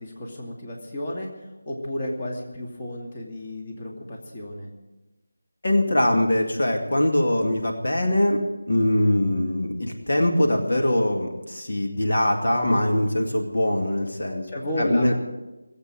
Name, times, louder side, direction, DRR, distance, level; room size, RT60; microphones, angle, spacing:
voice 1, 0.0-4.7 14.5-15.1, left 1 dB, 30° left, 0 dB, 2.5 m, -32 dB
voice 2, 5.6-8.4 8.7-14.5 14.8-15.1, left 1 dB, 65° left, 2 dB, 2.3 m, -22 dB
18.5 x 8.2 x 8.9 m, 1.1 s
figure-of-eight pair, 165°, 0 cm